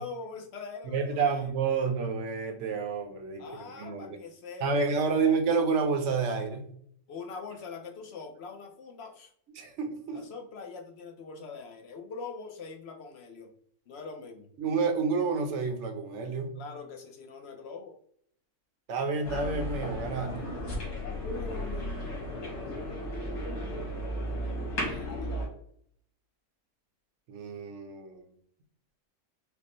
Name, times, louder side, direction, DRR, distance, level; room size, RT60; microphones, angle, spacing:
voice 1, 0.0-1.5 3.4-5.3 7.1-9.3 10.1-13.5 13.9-14.5 16.6-18.0 21.3-21.9 24.8-25.5, left 4 dB, 60° left, 4 dB, 0.7 m, -43 dB
voice 2, 0.8-3.4 3.8-4.2 4.6-6.7 9.5-10.2 14.6-16.6 18.9-20.5 27.3-28.3, right 5 dB, 60° right, 6 dB, 0.9 m, -29 dB
sound 1, 19.2-25.5, equal, 90° left, 1.9 m, -34 dB
5.0 x 2.1 x 3.0 m, 0.64 s
omnidirectional pair, 1.6 m